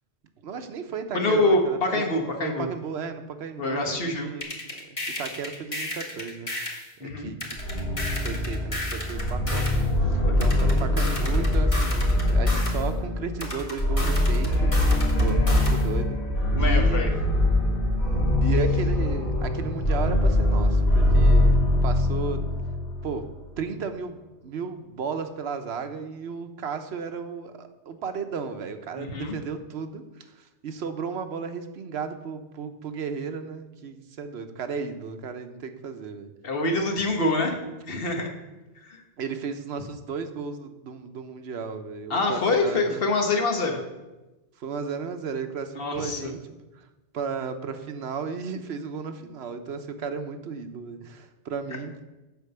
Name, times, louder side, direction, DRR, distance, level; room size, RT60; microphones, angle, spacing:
voice 1, 0.4-2.0 2.4-7.6 8.1-9.7 10.1-14.7 15.2-16.2 16.5-17.0 18.4-22.4 23.0-23.3 23.6-30.0 30.3-36.3 39.2-43.0 44.6-46.4 46.7-46.9 47.1-51.9, right 5 dB, 75° right, 8 dB, 1.1 m, -34 dB
voice 2, 1.1-2.7 3.6-4.3 7.0-7.3 10.2-10.4 16.5-17.1 28.9-29.3 36.4-37.6 37.9-38.3 38.8-39.0 42.1-43.8 45.8-46.3, left 2 dB, 60° left, 3 dB, 1.5 m, -25 dB
sound 1, 4.4-6.9 7.4-9.9 10.4-12.9 13.4-15.9, left 1 dB, 30° left, 1.6 m, -34 dB
sound 2, 7.6-23.2, left 1 dB, 75° left, 3.0 m, -23 dB
8.2 x 5.4 x 6.7 m, 1.1 s
omnidirectional pair, 1.1 m